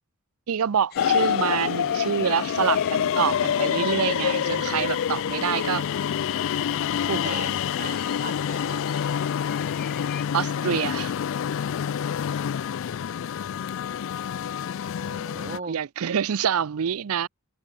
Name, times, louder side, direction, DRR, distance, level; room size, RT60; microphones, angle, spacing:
voice 1, 0.5-5.8 7.1-7.2 10.3-11.1 15.7-17.3, right 8 dB, 80° right, 0.5 m, -26 dB
sound 1, 0.9-10.2, left 10 dB, 45° left, 0.9 m, -45 dB
sound 2, 1.0-15.6, left 8 dB, 60° left, 0.3 m, -27 dB
Bowed string instrument, 1.3-4.5, left 3 dB, 25° left, 1.2 m, -51 dB
voice 2, 7.2-8.9 14.8-15.8, right 4 dB, 35° right, 2.0 m, -39 dB
head